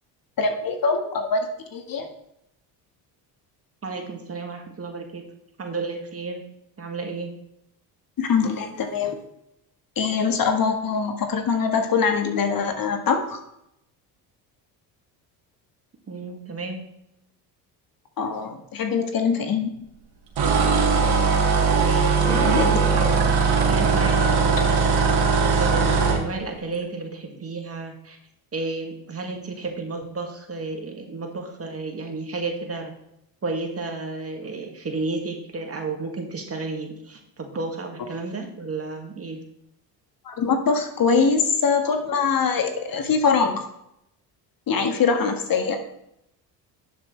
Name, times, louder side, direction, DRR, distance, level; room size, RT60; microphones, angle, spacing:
voice 1, 0.4-2.1 8.2-9.2 9.9-13.4 18.2-19.7 22.2-22.7 40.2-43.6 44.7-45.8, left 5 dB, 50° left, 5 dB, 1.7 m, -23 dB
voice 2, 3.8-5.2 5.6-6.4 6.8-7.3 16.1-16.8 21.8-23.2 23.7-24.9 25.6-28.2 28.5-32.9 33.4-39.4, right 3 dB, 30° right, 3 dB, 2.2 m, -32 dB
sound 1, 20.4-26.2, right 5 dB, 55° right, 2.6 m, -19 dB
11.0 x 7.4 x 3.4 m, 0.79 s
supercardioid pair, 75°, 46 cm